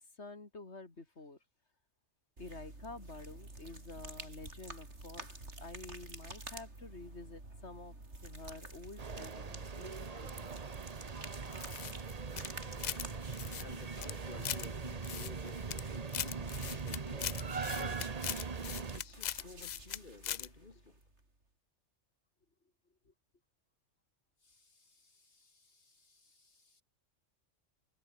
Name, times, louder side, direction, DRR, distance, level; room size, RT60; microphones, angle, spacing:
voice 1, 0.0-1.4 2.4-8.0 8.2-10.7 23.1-23.2 24.4-26.8, left 3 dB, 60° left, 3.5 m, -51 dB
sound 1, 2.4-21.3, right 2 dB, 60° right, 5.4 m, -50 dB
sound 2, 9.0-19.0, right 5 dB, 35° right, 1.0 m, -41 dB
sound 3, 11.5-13.1 13.3-14.7 15.0-15.8 16.1-20.0 20.2-20.5, left 10 dB, 80° left, 0.4 m, -40 dB
voice 2, 13.5-18.3 18.9-21.0, left 4 dB, 40° left, 1.7 m, -52 dB
omnidirectional pair, 1.3 m